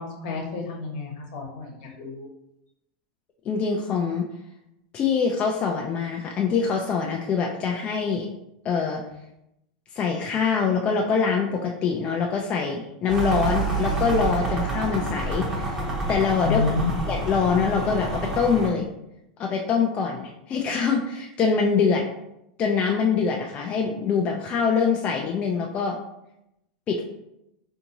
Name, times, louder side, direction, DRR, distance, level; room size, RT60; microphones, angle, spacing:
voice 1, 0.0-2.3 16.4-16.9, left 4 dB, 60° left, 0 dB, 1.1 m, -29 dB
voice 2, 3.5-4.2 4.9-8.3 8.6-9.0 9.9-15.8 16.1-16.6 17.1-18.9 19.4-22.0 22.6-26.0 26.9-27.0, left 5 dB, 30° left, 0 dB, 0.3 m, -24 dB
sound 1, 13.1-18.7, right 2 dB, 15° right, 0.8 m, -28 dB
3.5 x 2.6 x 2.9 m, 0.84 s
supercardioid pair, 140°, 5 cm